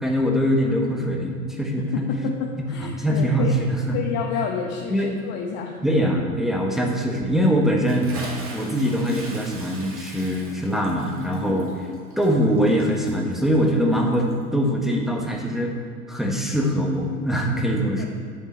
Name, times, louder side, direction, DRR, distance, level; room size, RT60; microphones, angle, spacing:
voice 1, 0.0-2.1 2.8-4.0 4.9-5.2 5.8-8.1 8.5-11.7 12.2-15.7 16.1-18.1, equal, ahead, 0 dB, 1.4 m, -22 dB
voice 2, 1.8-3.6 3.9-5.8 11.5-11.6 18.0-18.1, left 7 dB, 45° left, 0 dB, 1.1 m, -29 dB
Bathtub (filling or washing) / Splash splatter, 7.9-14.4, right 2 dB, 30° right, 2.1 m, -41 dB
11.0 x 8.0 x 4.3 m, 2.1 s
hypercardioid pair, 90°, 45 cm